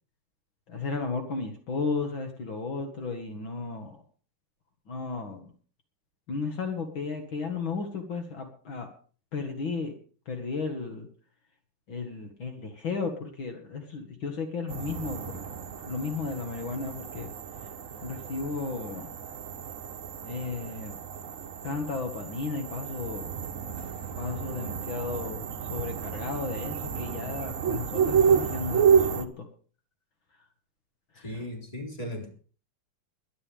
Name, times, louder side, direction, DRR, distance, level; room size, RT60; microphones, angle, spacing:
voice 1, 0.7-4.0 4.9-5.5 6.3-8.9 9.3-10.0 10.3-11.1 11.9-15.4 15.8-17.3 17.6-17.7 18.0-19.1 20.2-21.0 21.6-23.4 24.2-29.5 30.3-30.5 31.1-31.4, left 4 dB, 65° left, 2.6 m, -34 dB
sound 1, 14.7-29.3, right 7 dB, 45° right, 1.2 m, -30 dB
voice 2, 31.2-32.3, left 1 dB, 15° left, 4.2 m, -37 dB
23.0 x 11.0 x 3.5 m
omnidirectional pair, 2.4 m